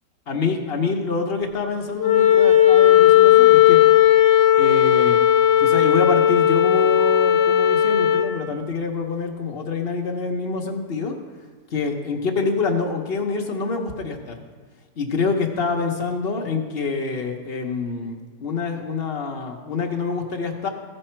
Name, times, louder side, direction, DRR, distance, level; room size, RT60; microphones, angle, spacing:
voice 1, 0.3-3.8 4.6-5.2 5.6-11.2 11.7-14.4 15.0-20.7, left 4 dB, 45° left, 3 dB, 1.0 m, -26 dB
Wind instrument woodwind instrument, 2.0-8.3, left 11 dB, 85° left, 1.2 m, -15 dB
15.5 x 5.5 x 4.4 m, 1.5 s
omnidirectional pair, 1.7 m